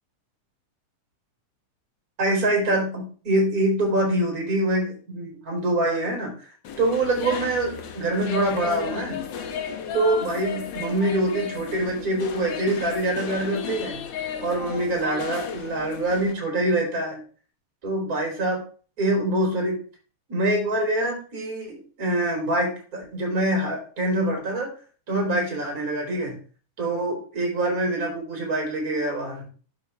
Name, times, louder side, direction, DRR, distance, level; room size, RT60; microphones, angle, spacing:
voice 1, 2.2-6.5 6.8-9.2 9.9-14.0 14.4-17.2 17.8-18.6 19.0-19.8 20.3-24.7 25.1-26.4 26.8-29.4, right 1 dB, 25° right, -1 dB, 3.8 m, -25 dB
sound 1, 6.6-16.3, left 7 dB, 75° left, 1.0 m, -34 dB
12.0 x 7.5 x 3.5 m, 0.39 s
omnidirectional pair, 3.7 m